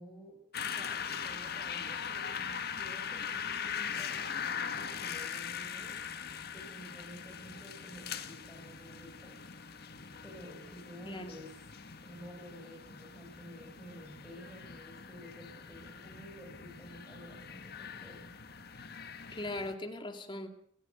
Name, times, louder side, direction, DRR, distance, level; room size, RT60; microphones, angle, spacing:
voice 1, 0.0-6.1 6.5-9.4 10.2-18.4, equal, ahead, 0 dB, 5.3 m, -51 dB
sound 1, 0.5-19.7, left 7 dB, 50° left, 1.7 m, -41 dB
voice 2, 11.0-11.4 19.3-20.5, left 1 dB, 25° left, 5 dB, 2.5 m, -39 dB
28.5 x 14.0 x 8.0 m, 0.67 s
head